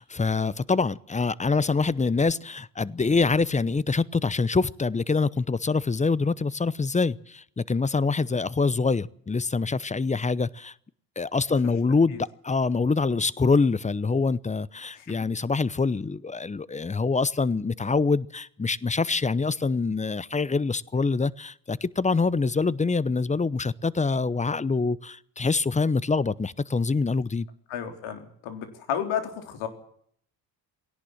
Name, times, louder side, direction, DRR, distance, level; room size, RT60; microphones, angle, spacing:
voice 1, 0.0-10.7 11.2-27.5, left 4 dB, 15° left, 0.8 m, -25 dB
voice 2, 15.0-15.3 27.7-29.7, left 8 dB, 70° left, 3.9 m, -32 dB
20.5 x 17.5 x 7.6 m
hypercardioid pair, 55°, 50 cm